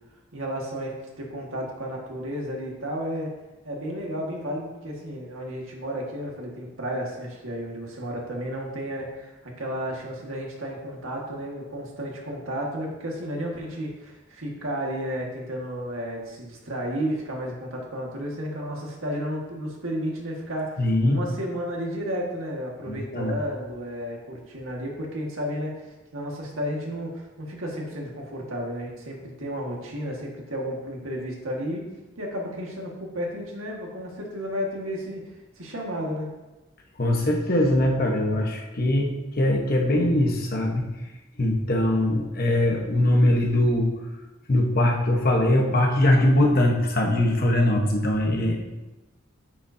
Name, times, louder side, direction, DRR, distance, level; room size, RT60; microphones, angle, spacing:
voice 1, 0.3-3.3 3.6-31.9 32.2-35.2 35.6-36.3, equal, 85° right, -1 dB, 1.8 m, -32 dB
voice 2, 20.8-21.2 22.9-23.3 37.0-40.9 41.4-43.9 44.5-48.6, left 1 dB, 45° left, 0 dB, 1.2 m, -21 dB
9.3 x 7.0 x 2.8 m, 1.1 s
head